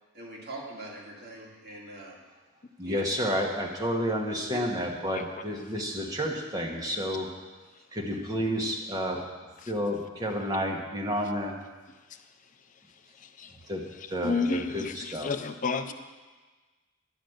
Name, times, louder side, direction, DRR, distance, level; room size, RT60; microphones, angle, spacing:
voice 1, 0.1-2.2 2.8-3.0 4.5-4.6 15.8-15.9, right 1 dB, 50° right, -4 dB, 2.2 m, -42 dB
voice 2, 2.8-7.3 7.9-9.2 9.7-11.5 13.7-13.8 14.1-15.3, equal, 20° right, -1 dB, 1.2 m, -30 dB
voice 3, 13.2-13.5 14.0-15.9, left 4 dB, 40° left, 9 dB, 0.4 m, -32 dB
10.5 x 5.0 x 7.9 m, 1.3 s
head